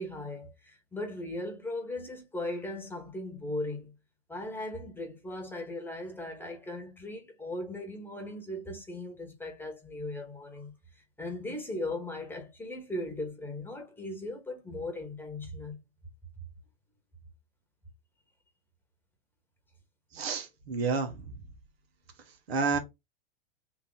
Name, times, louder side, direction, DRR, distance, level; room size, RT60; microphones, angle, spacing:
voice 1, 0.0-3.9 4.3-10.7 11.2-15.8, left 1 dB, 5° left, 1.2 m, -38 dB
voice 2, 20.1-21.3 22.5-22.8, right 4 dB, 70° right, 1.4 m, -30 dB
3.8 x 2.8 x 3.9 m
hypercardioid pair, 110°, 32 cm